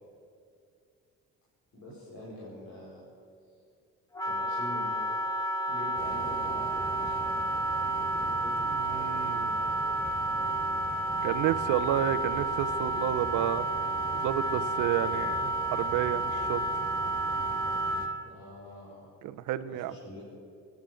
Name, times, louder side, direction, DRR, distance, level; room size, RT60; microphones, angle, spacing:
voice 1, 1.7-3.0 4.2-5.3 5.7-7.5 8.0-9.9 18.2-19.1 19.7-20.2, left 1 dB, 65° left, -7 dB, 4.7 m, -45 dB
Wind instrument woodwind instrument, 4.1-18.3, right 2 dB, 10° left, 1.5 m, -31 dB
sound 1, 6.0-18.1, right 2 dB, 30° right, 1.7 m, -44 dB
voice 2, 8.6-9.5 11.2-13.7 14.1-16.6 19.2-19.9, right 12 dB, 90° right, 13 dB, 0.7 m, -31 dB
20.0 x 9.5 x 7.6 m, 2.4 s
cardioid pair, 90°, 30 cm